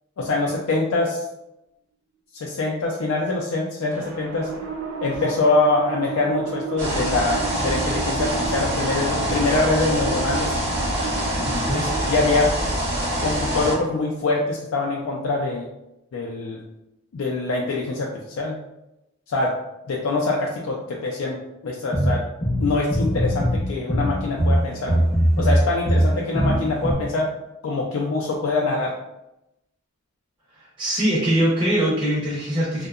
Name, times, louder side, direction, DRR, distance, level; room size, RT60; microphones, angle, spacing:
voice 1, 0.2-1.2 2.3-4.5 5.0-10.5 11.7-12.6 13.2-15.7 16.1-16.6 17.1-18.6 19.3-19.6 19.9-21.4 21.6-22.2 22.6-25.1 25.4-27.3 27.6-28.9, left 3 dB, 85° left, -2 dB, 0.4 m, -24 dB
sound 1, 3.9-14.6, right 5 dB, 90° right, 0.6 m, -34 dB
sound 2, 6.8-13.7, right 1 dB, 55° right, 0.8 m, -25 dB
voice 2, 11.5-11.9 30.6-32.9, right 1 dB, 25° right, -8 dB, 0.5 m, -22 dB
sound 3, 21.9-23.6 23.9-26.9, equal, 25° left, 0.5 m, -20 dB
2.7 x 2.1 x 2.3 m, 0.87 s
head